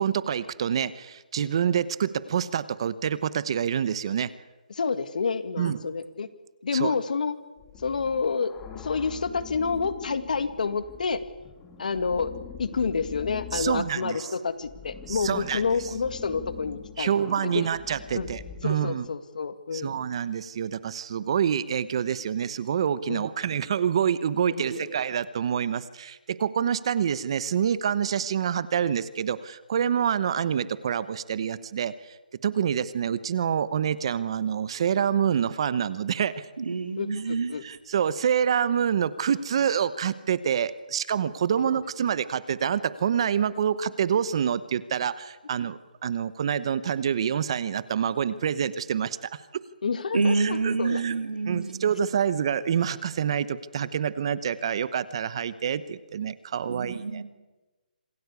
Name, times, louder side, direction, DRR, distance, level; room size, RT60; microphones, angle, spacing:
voice 1, 0.0-4.3 5.6-5.8 6.7-6.9 13.5-14.2 15.1-15.6 17.0-19.0 19.7-32.1 32.4-36.4 37.6-49.6 50.4-51.1 51.5-57.2, right 8 dB, 35° right, 0.9 m, -27 dB
voice 2, 4.7-6.3 6.6-7.4 7.8-11.2 11.8-12.3 12.6-17.1 17.4-17.7 18.1-18.3 18.6-20.0 23.1-23.3 24.4-24.9 37.0-37.6 41.5-41.6 49.8-51.1, left 5 dB, 60° left, 2.0 m, -29 dB
sound 1, 7.6-18.6, left 8 dB, 10° left, 1.7 m, -43 dB
voice 3, 36.6-37.6 50.1-51.8 56.6-57.2, right 4 dB, 75° right, 2.8 m, -27 dB
26.5 x 16.5 x 8.3 m
hypercardioid pair, 170°, 5 cm